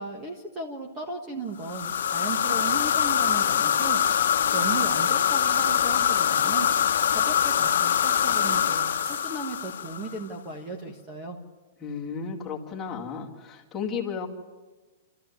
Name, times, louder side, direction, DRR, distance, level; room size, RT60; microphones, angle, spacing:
voice 1, 0.0-4.0 4.5-6.7 7.1-11.4, right 3 dB, 15° right, 2 dB, 1.4 m, -36 dB
sound 1, 1.6-10.2, left 9 dB, 75° left, 1.0 m, -24 dB
sound 2, 7.0-9.7, right 4 dB, 70° right, 4.3 m, -49 dB
voice 2, 11.8-14.3, left 6 dB, 10° left, -4 dB, 2.2 m, -33 dB
27.5 x 14.0 x 9.4 m, 1.3 s
hypercardioid pair, 180°, 0 cm